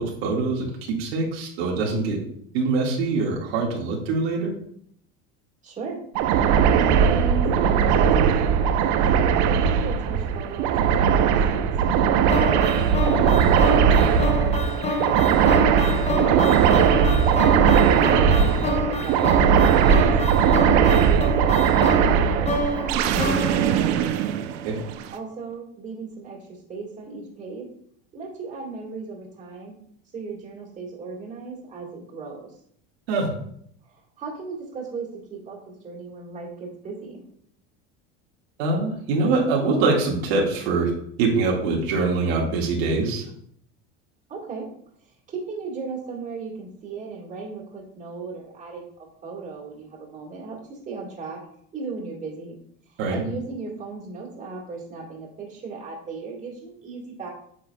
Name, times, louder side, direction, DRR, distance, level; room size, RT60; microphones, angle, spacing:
voice 1, 0.0-2.2 2.5-4.5 24.6-24.8 33.1-33.3 38.6-40.9 41.2-43.2 53.0-53.2, right 3 dB, 90° right, -2 dB, 1.9 m, -23 dB
voice 2, 5.6-6.1 6.7-9.0 9.4-11.2 11.5-14.3 15.6-18.5 18.9-20.1 20.7-22.6 23.0-24.2 25.1-27.7 28.1-29.8 30.1-32.6 33.8-37.2 44.3-44.7 45.0-51.4 51.7-52.6 52.9-57.3, right 4 dB, 25° right, -3 dB, 1.9 m, -36 dB
sound 1, 6.1-25.0, right 8 dB, 60° right, 0.6 m, -19 dB
sound 2, 12.3-24.5, left 2 dB, 20° left, 0.9 m, -28 dB
8.4 x 5.8 x 2.3 m, 0.67 s
cardioid pair, 145°, 30 cm